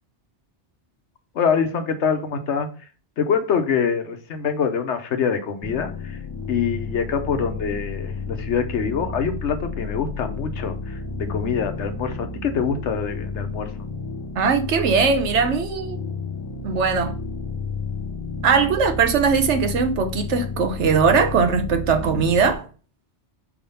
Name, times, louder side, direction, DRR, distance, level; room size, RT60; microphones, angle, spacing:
voice 1, 1.3-2.7 3.2-6.2 6.5-13.7, left 6 dB, 85° left, 1.1 m, -25 dB
sound 1, 5.6-22.5, left 3 dB, 25° left, 0.7 m, -31 dB
voice 2, 14.4-16.0 16.6-17.1 18.4-22.6, right 5 dB, 80° right, 1.1 m, -20 dB
4.6 x 3.6 x 5.5 m
omnidirectional pair, 1.2 m